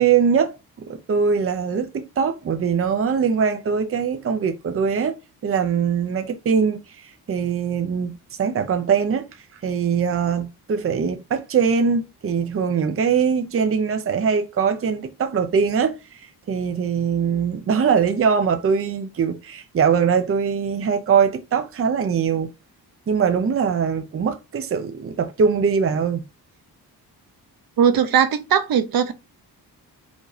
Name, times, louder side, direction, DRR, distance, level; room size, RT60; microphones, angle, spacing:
voice 1, 0.0-5.2 5.4-9.2 9.6-22.5 23.1-26.2, right 6 dB, 35° right, 0.8 m, -22 dB
voice 2, 27.8-29.1, right 8 dB, 65° right, 1.0 m, -19 dB
5.2 x 3.7 x 5.0 m
wide cardioid pair, 170°, 39 cm